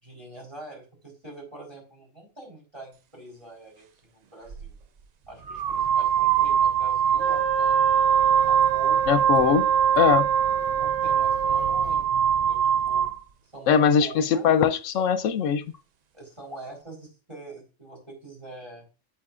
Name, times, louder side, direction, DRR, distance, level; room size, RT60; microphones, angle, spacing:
voice 1, 0.0-4.8 5.3-7.9 8.4-9.1 10.4-13.1 13.4-14.5 16.1-18.9, right 2 dB, 20° right, 4.2 m, -44 dB
sound 1, 4.5-4.7 5.5-13.2, right 8 dB, 85° right, 0.3 m, -22 dB
Wind instrument woodwind instrument, 7.2-11.9, right 10 dB, 55° right, 3.7 m, -31 dB
voice 2, 9.1-9.7 10.0-10.3 13.7-15.6, left 7 dB, 75° left, 1.0 m, -21 dB
9.0 x 7.7 x 2.5 m
omnidirectional pair, 1.3 m